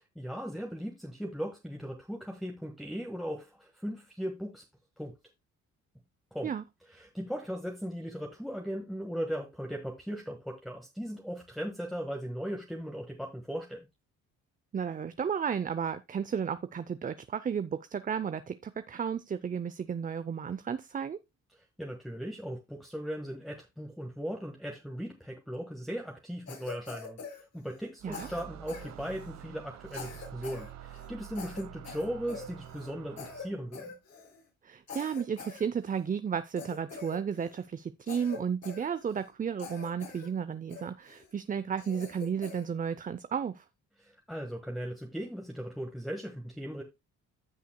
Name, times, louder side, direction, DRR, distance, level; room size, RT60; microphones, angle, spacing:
voice 1, 0.1-4.6 5.0-5.1 6.3-6.5 6.9-13.8 21.5-27.2 27.5-34.0 44.0-46.8, equal, ahead, 1.6 m, -38 dB
voice 2, 14.7-21.2 28.0-28.3 34.6-43.6, right 7 dB, 25° right, 0.6 m, -33 dB
Cough, 26.5-27.9 28.1-29.4 29.9-30.7 30.9-31.1 31.3-32.9 33.2-33.5 33.7-34.4 34.9-36.1 36.6-37.6 38.1-39.3 39.6-40.3 40.7-41.2 41.8-42.7, left 5 dB, 65° left, 5.5 m, -44 dB
sound 1, 28.0-33.7, right 11 dB, 65° right, 0.8 m, -48 dB
15.0 x 5.7 x 2.2 m
cardioid pair, 90°, 30 cm